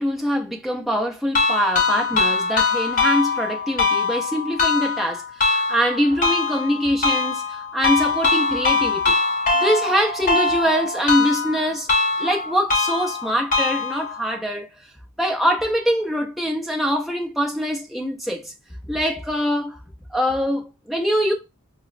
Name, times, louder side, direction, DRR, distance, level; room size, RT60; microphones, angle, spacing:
voice 1, 0.0-9.1 9.5-11.9 12.2-14.7 15.2-18.5 18.9-19.8 20.1-21.3, equal, ahead, 0.5 m, -23 dB
sound 1, 1.3-14.3, left 3 dB, 40° left, 0.8 m, -22 dB
4.6 x 2.0 x 2.4 m
head